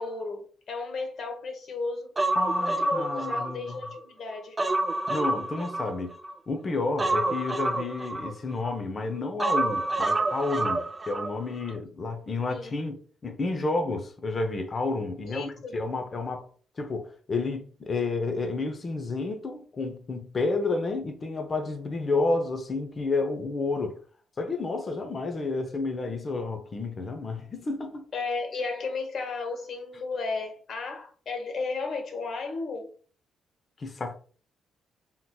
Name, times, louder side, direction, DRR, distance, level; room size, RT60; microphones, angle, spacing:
voice 1, 0.0-2.1 2.6-4.6 12.5-12.8 15.3-15.7 28.1-32.9, left 4 dB, 55° left, 1.0 m, -34 dB
Human voice, 2.2-3.9 4.3-6.3 7.0-8.7 9.4-11.3 11.6-11.7, right 2 dB, 20° right, 0.4 m, -28 dB
voice 2, 2.3-3.8 5.1-6.1 6.5-16.5 16.8-24.0 24.4-28.0 33.8-34.1, left 3 dB, 35° left, 0.6 m, -30 dB
3.7 x 2.9 x 2.3 m
cardioid pair, 90°, 0 cm